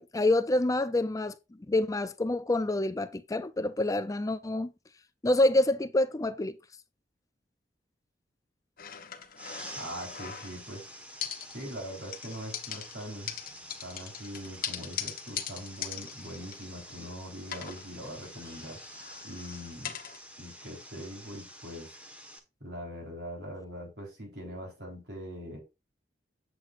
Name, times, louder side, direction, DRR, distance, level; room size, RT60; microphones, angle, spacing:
voice 1, 0.0-1.4 1.7-4.7 5.2-6.5, left 1 dB, 20° left, 0.4 m, -27 dB
sound 1, 8.8-10.8 11.2-11.8 12.1-17.1 17.4-20.2, left 9 dB, 55° left, 1.1 m, -41 dB
sound 2, 9.4-22.4, equal, 10° right, 1.4 m, -48 dB
voice 2, 9.7-11.0 11.5-13.3 13.8-18.8 19.2-20.0 20.4-21.9 22.6-25.6, equal, 65° right, 4.2 m, -42 dB
8.0 x 7.9 x 2.5 m
head